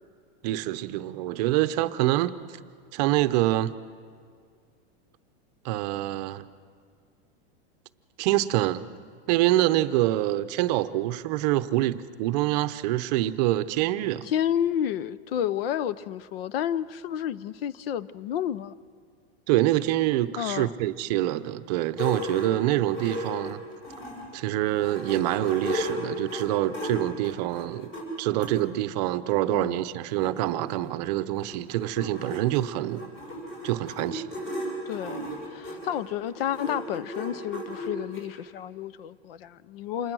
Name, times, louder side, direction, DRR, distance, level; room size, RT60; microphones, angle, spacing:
voice 1, 0.4-2.4 2.9-3.7 5.6-6.4 8.2-8.9 9.3-14.2 19.5-23.6 24.3-27.9 28.2-33.0 33.6-34.3, right 15 dB, 40° right, 0.7 m, -26 dB
voice 2, 14.2-18.7 20.4-20.7 29.5-29.8 34.9-40.1, left 10 dB, 65° left, 0.7 m, -30 dB
sound 1, 22.0-24.3 24.7-28.5 29.3-29.4 29.7-29.8 30.0-38.2, equal, 30° left, 6.1 m, -35 dB
27.5 x 21.5 x 6.2 m
supercardioid pair, 165°, 32 cm